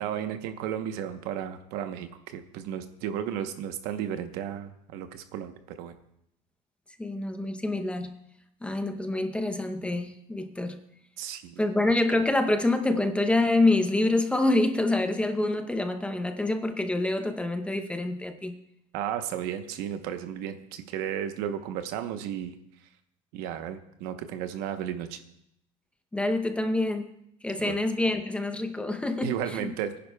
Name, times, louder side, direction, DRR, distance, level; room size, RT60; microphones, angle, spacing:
voice 1, 0.0-5.9 11.2-11.6 18.9-22.6 23.3-25.2 27.6-27.8 29.2-29.9, right 9 dB, 75° right, 8 dB, 1.0 m, -34 dB
voice 2, 7.0-8.2 8.6-10.8 11.6-18.6 26.1-27.1 27.4-29.7, left 2 dB, 5° left, 7 dB, 0.7 m, -26 dB
21.0 x 10.5 x 2.3 m, 0.76 s
cardioid pair, 140°, 16 cm